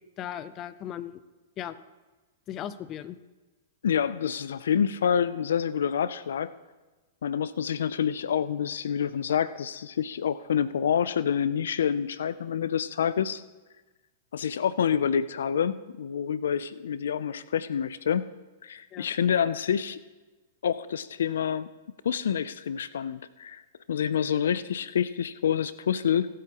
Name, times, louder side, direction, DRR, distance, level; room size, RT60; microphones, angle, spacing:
voice 1, 0.2-1.2 1.6-1.8 2.5-3.2 18.9-19.1, left 11 dB, 30° left, 14 dB, 0.6 m, -37 dB
voice 2, 3.8-6.5 7.2-13.4 14.3-18.2 18.6-20.0 20.6-21.7 22.0-23.6 23.9-26.3, left 8 dB, 80° left, 16 dB, 0.4 m, -27 dB
24.5 x 8.3 x 2.9 m, 1.2 s
hypercardioid pair, 130°, 0 cm